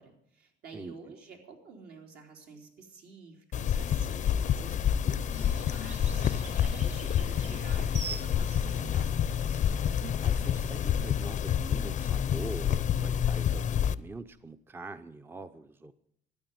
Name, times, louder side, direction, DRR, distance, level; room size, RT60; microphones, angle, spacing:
voice 1, 0.0-9.1, right 4 dB, 70° right, 1 dB, 3.6 m, -50 dB
sound 1, 3.5-13.9, left 9 dB, 45° left, 0.6 m, -28 dB
sound 2, 5.3-11.1, right 4 dB, 40° right, 1.8 m, -45 dB
voice 2, 9.9-15.9, right 2 dB, 15° right, 11 dB, 0.6 m, -43 dB
13.0 x 9.2 x 9.3 m, 0.72 s
cardioid pair, 110°, 17 cm